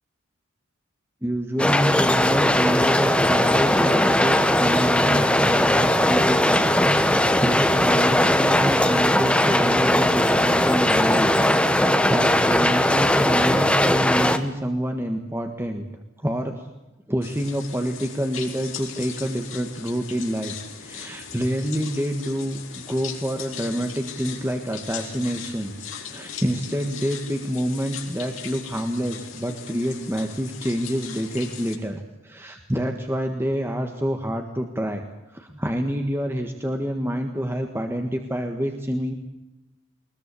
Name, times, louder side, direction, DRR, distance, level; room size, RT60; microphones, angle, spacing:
voice 1, 1.2-11.3 11.6-15.8 16.2-16.7 17.1-20.5 20.8-35.0 35.3-39.1, equal, 10° right, 4 dB, 1.6 m, -27 dB
sound 1, 1.6-14.4, left 1 dB, 5° left, 1.3 m, -19 dB
sound 2, 17.2-31.8, left 7 dB, 75° left, 4.6 m, -39 dB
22.0 x 21.0 x 8.5 m, 1.0 s
head